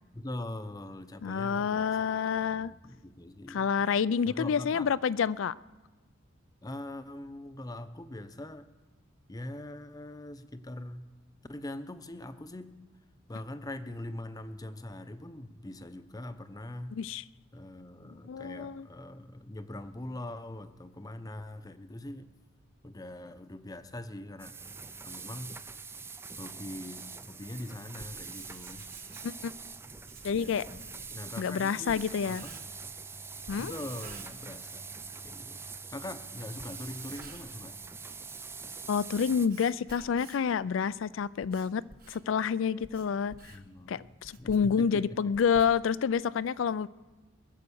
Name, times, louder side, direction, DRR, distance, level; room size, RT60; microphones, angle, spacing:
voice 1, 0.1-2.0 2.3-3.7 4.3-4.9 6.6-8.7 9.3-11.1 11.5-12.8 13.3-16.9 17.5-22.3 22.8-24.5 25.0-25.6 26.4-28.9 30.3-32.7 33.6-35.6 35.9-37.8 43.5-45.3, left 1 dB, 20° left, 11 dB, 0.7 m, -42 dB
voice 2, 1.2-2.7 3.5-5.5 16.9-17.2 18.3-18.9 29.2-29.5 30.2-30.7 31.4-32.4 33.5-33.7 38.9-41.8 42.1-43.5 43.9-46.9, left 6 dB, 65° left, 19 dB, 0.4 m, -28 dB
sound 1, 24.4-39.5, right 4 dB, 10° right, 0.4 m, -44 dB
Writing, 28.0-32.9 33.5-34.9 35.2-35.3 36.0-36.1 36.5-37.7 38.1-40.6 41.1-46.2, right 4 dB, 45° right, 1.3 m, -51 dB
21.5 x 7.7 x 7.0 m, 1.2 s
head